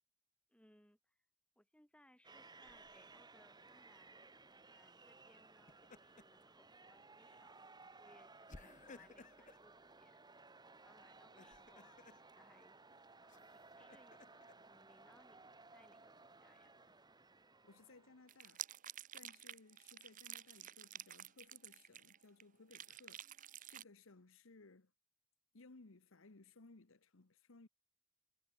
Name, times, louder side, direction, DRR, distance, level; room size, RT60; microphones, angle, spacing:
voice 1, 0.5-1.1 1.6-4.2 4.7-7.6 8.0-10.2 10.6-12.8 13.2-16.7, left 1 dB, 5° left, 2.9 m, -69 dB
sound 1, 2.2-18.5, right 3 dB, 20° right, 2.2 m, -61 dB
Laughter, 2.6-3.2 5.5-6.4 6.8-7.0 8.5-9.6 11.2-12.2 13.3-14.5, left 3 dB, 35° left, 0.8 m, -59 dB
voice 2, 17.6-18.7 19.1-23.3 23.7-24.9 25.5-27.7, left 3 dB, 65° left, 1.1 m, -62 dB
sound 2, 18.3-22.4 22.7-23.8, right 11 dB, 35° right, 1.0 m, -50 dB
head